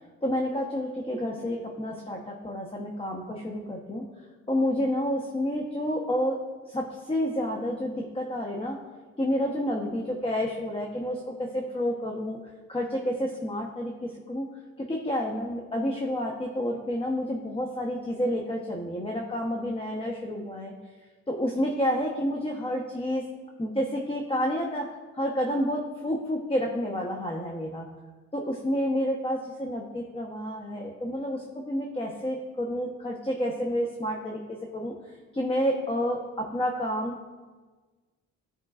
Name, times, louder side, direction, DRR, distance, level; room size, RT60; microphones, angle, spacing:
voice 1, 0.2-4.0 4.5-6.4 6.7-8.8 9.2-12.4 12.7-14.5 14.8-20.7 21.3-23.2 23.6-24.9 25.1-27.9 28.3-34.9 35.3-37.3, equal, 20° left, 0 dB, 1.0 m, -29 dB
15.0 x 5.4 x 2.5 m, 1.3 s
cardioid pair, 90°, 30 cm